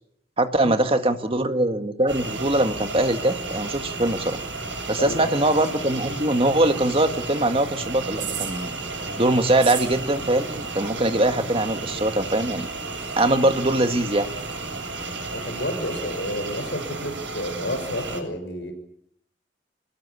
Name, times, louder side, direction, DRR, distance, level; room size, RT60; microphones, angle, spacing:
voice 1, 0.4-4.4 4.9-8.7 9.2-12.7 13.2-14.3, right 1 dB, 30° right, 7 dB, 1.9 m, -22 dB
sound 1, 2.1-18.2, right 3 dB, 90° right, 7.8 m, -33 dB
voice 2, 15.3-18.7, left 1 dB, 70° left, 6 dB, 6.5 m, -30 dB
26.5 x 21.0 x 8.4 m, 0.70 s
head